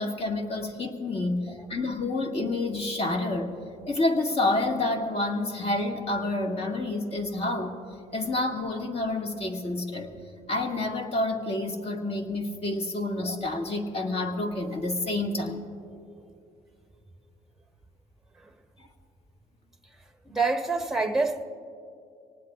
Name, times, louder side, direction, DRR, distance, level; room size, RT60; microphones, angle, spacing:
voice 1, 0.0-3.5 3.9-7.8 8.1-10.1 10.5-15.6, left 2 dB, 35° left, 1.9 m, -28 dB
voice 2, 20.2-21.4, right 3 dB, ahead, 1.1 m, -27 dB
25.0 x 19.0 x 2.4 m
cardioid pair, 110°, 17 cm